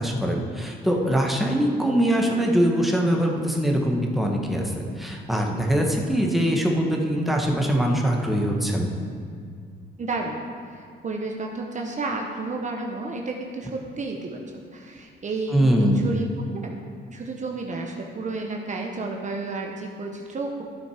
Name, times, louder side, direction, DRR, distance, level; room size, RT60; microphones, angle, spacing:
voice 1, 0.0-8.9 15.5-16.1, equal, ahead, 0 dB, 1.3 m, -22 dB
voice 2, 10.0-16.8 17.1-20.7, right 3 dB, 40° right, 1 dB, 1.0 m, -32 dB
11.5 x 6.3 x 4.9 m, 2.1 s
cardioid pair, 90°, 20 cm